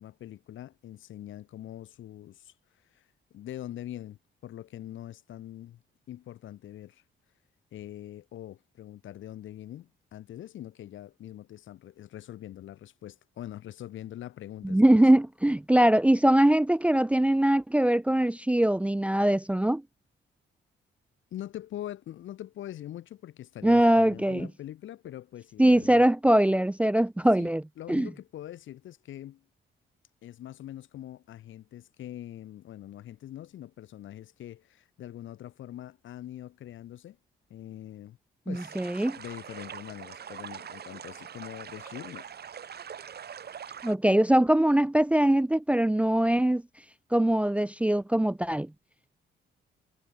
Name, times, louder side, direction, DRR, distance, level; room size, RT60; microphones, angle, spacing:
voice 1, 0.0-2.5 2.9-3.0 3.3-5.8 6.1-7.0 7.7-14.8 21.3-26.0 27.4-27.5 27.8-29.4 30.2-37.2 37.5-38.2 38.4-38.8 39.1-42.3, left 12 dB, 75° left, 4.8 m, -43 dB
voice 2, 14.6-19.8 23.6-24.5 25.6-27.6 27.9-28.1 38.5-39.2 43.8-46.6 47.1-48.7, right 1 dB, 5° right, 0.6 m, -22 dB
sound 1, 38.5-44.0, right 8 dB, 55° right, 5.1 m, -43 dB
cardioid pair, 90°, 20 cm